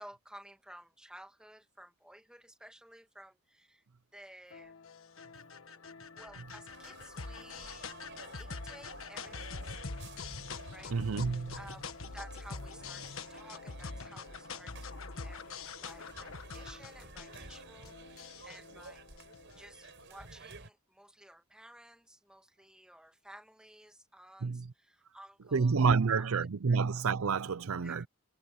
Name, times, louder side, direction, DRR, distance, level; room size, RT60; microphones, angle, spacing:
voice 1, 0.0-3.8 4.1-4.7 6.2-7.9 8.4-9.8 10.7-11.8 12.1-19.1 19.6-26.3 26.7-26.8 27.8-28.1, right 1 dB, 5° right, 1.8 m, -54 dB
sound 1, 4.5-20.0, left 4 dB, 70° left, 1.5 m, -45 dB
sound 2, 6.7-20.7, right 3 dB, 60° right, 6.7 m, -53 dB
voice 2, 10.9-11.6 24.4-24.7 25.5-28.1, right 5 dB, 75° right, 0.6 m, -29 dB
head